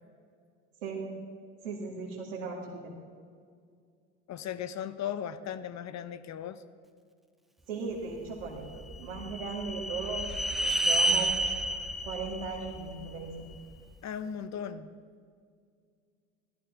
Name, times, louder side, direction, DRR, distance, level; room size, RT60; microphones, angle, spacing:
voice 1, 1.6-2.8 7.7-11.5 12.0-13.3, right 4 dB, 85° right, -3 dB, 2.3 m, -37 dB
voice 2, 4.3-6.6 14.0-14.9, left 9 dB, 45° left, 14 dB, 1.1 m, -37 dB
sound 1, 8.4-13.6, right 1 dB, ahead, 1.6 m, -31 dB
17.5 x 13.5 x 6.2 m, 2.2 s
hypercardioid pair, 70°, 36 cm